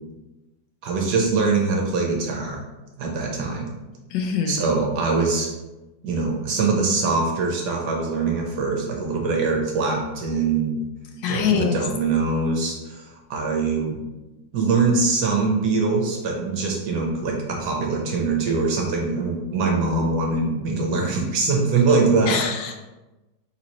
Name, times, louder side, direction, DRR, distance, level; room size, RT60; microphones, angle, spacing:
voice 1, 0.8-2.6 3.0-3.7 4.5-5.5 6.0-10.8 11.3-14.0 14.5-22.5, right 4 dB, 65° right, 0 dB, 1.3 m, -23 dB
voice 2, 4.1-4.6 11.2-11.8 22.3-22.7, left 7 dB, 75° left, 4 dB, 1.2 m, -24 dB
3.9 x 3.0 x 4.0 m, 1.1 s
omnidirectional pair, 2.0 m